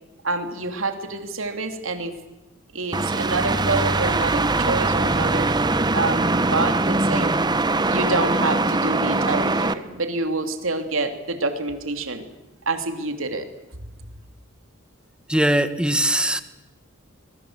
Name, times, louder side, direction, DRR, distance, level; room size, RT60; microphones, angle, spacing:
voice 1, 0.2-2.1 2.7-5.5 5.9-7.3 7.8-12.2 12.7-13.4, right 3 dB, 75° right, 7 dB, 3.0 m, -27 dB
sound 1, 2.9-9.7, right 2 dB, 20° right, 0.9 m, -22 dB
voice 2, 15.3-16.4, right 1 dB, 5° right, 11 dB, 1.3 m, -20 dB
25.5 x 23.0 x 8.0 m, 1.1 s
head